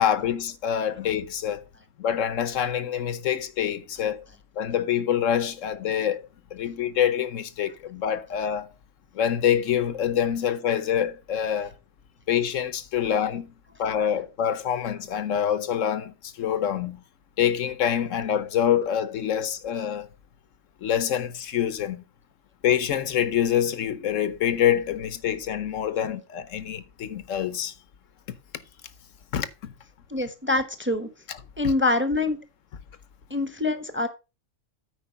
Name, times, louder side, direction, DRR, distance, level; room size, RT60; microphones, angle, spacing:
voice 1, 0.0-1.6 2.0-4.2 4.6-6.2 6.5-8.7 9.1-11.7 12.3-13.5 13.8-17.0 17.4-20.1 20.8-22.0 22.6-27.7 29.3-29.7, left 9 dB, 75° left, 1.1 m, -26 dB
voice 2, 30.1-31.1 31.6-32.4 33.3-34.1, left 2 dB, 10° right, 0.8 m, -25 dB
9.0 x 4.6 x 5.7 m
omnidirectional pair, 1.4 m